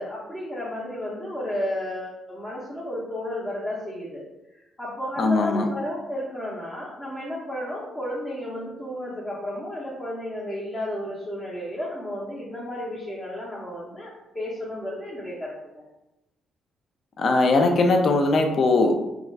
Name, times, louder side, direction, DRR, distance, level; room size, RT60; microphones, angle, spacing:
voice 1, 0.0-4.2 4.8-15.8, left 1 dB, 20° left, -8 dB, 0.8 m, -32 dB
voice 2, 5.2-5.7 17.2-18.9, left 3 dB, 55° left, 3 dB, 0.4 m, -20 dB
2.4 x 2.3 x 3.2 m, 0.96 s
cardioid pair, 90°, 0 cm